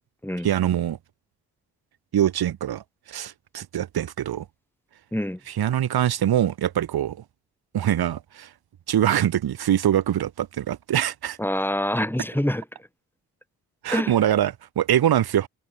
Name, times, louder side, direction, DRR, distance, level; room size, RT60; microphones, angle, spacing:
voice 1, 0.4-1.0 2.1-2.8 3.1-4.5 5.5-7.2 7.7-8.5 8.9-11.4 13.8-15.5, right 11 dB, 75° right, 2.1 m, -23 dB
voice 2, 11.4-12.6 13.9-14.2, left 1 dB, 5° left, 7.6 m, -25 dB
supercardioid pair, 55°, 38 cm